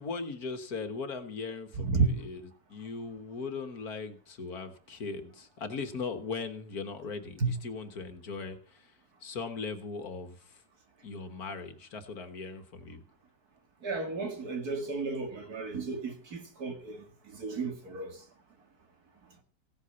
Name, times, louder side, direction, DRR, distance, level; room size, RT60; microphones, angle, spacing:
voice 1, 0.0-8.9 9.2-10.6 11.0-13.0, left 4 dB, 60° left, 1.8 m, -39 dB
voice 2, 13.8-17.0 17.3-18.1, right 4 dB, 60° right, 2.5 m, -32 dB
16.0 x 8.2 x 6.9 m
omnidirectional pair, 1.9 m